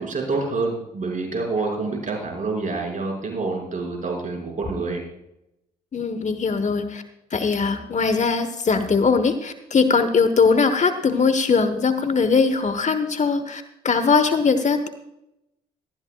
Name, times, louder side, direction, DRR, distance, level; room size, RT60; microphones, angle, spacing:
voice 1, 0.0-5.0, right 3 dB, 40° right, 1 dB, 5.7 m, -27 dB
voice 2, 5.9-7.0 7.3-14.9, left 5 dB, 40° left, 10 dB, 1.2 m, -20 dB
18.5 x 14.0 x 2.4 m, 0.85 s
hypercardioid pair, 50°, 19 cm